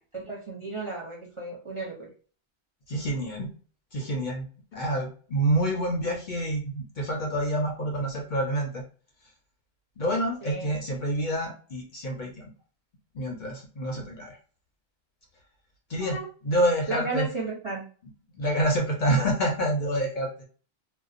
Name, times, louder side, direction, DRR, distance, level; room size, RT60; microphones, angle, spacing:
voice 1, 0.1-2.1 10.4-10.7 16.0-16.3 16.9-17.8, right 3 dB, 35° right, -4 dB, 0.6 m, -33 dB
voice 2, 2.9-3.5 3.9-4.4 4.7-8.8 10.0-12.5 13.1-14.4 15.9-16.2 16.4-17.3 18.3-20.3, right 1 dB, 55° left, 1 dB, 0.6 m, -27 dB
2.6 x 2.1 x 2.4 m, 0.39 s
omnidirectional pair, 1.1 m